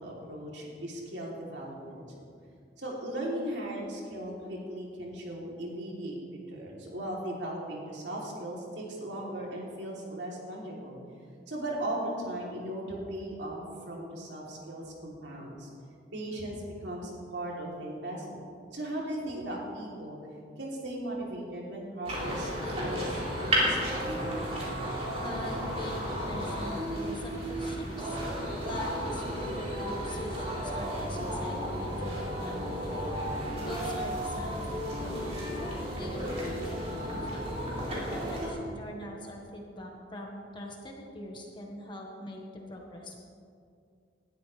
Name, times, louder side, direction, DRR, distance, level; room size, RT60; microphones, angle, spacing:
voice 1, 0.0-2.3 2.8-6.2 6.5-11.0 11.5-15.7 16.1-18.4 18.7-20.2 20.6-24.0, right 1 dB, 85° right, -3 dB, 3.2 m, -37 dB
sound 1, 22.0-38.5, equal, 40° right, 4.0 m, -33 dB
voice 2, 25.2-28.2 28.6-32.9 33.6-37.5 38.1-43.2, left 1 dB, 25° left, 0 dB, 1.5 m, -43 dB
19.5 x 12.5 x 3.4 m, 2.3 s
head